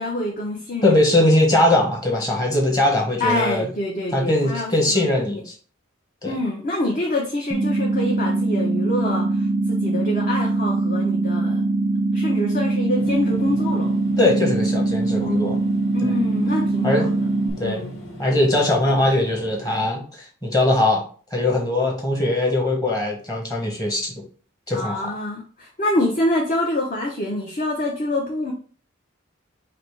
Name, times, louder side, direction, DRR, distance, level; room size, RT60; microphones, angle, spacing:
voice 1, 0.0-1.0 3.2-5.0 6.2-11.6 12.1-14.0 15.9-17.1 17.6-18.0 24.7-28.5, left 1 dB, 40° left, 0 dB, 0.7 m, -26 dB
voice 2, 0.8-3.7 4.1-5.5 6.2-6.4 14.2-15.6 16.0-16.1 16.8-17.1 17.6-17.9 18.2-21.0 21.3-24.1 24.7-25.1, left 1 dB, 20° left, -1 dB, 1.1 m, -20 dB
sound 1, 7.5-17.5, right 2 dB, 25° right, 0.5 m, -22 dB
sound 2, 12.9-19.9, equal, 70° left, 1.5 m, -40 dB
4.9 x 2.1 x 4.5 m, 0.41 s
head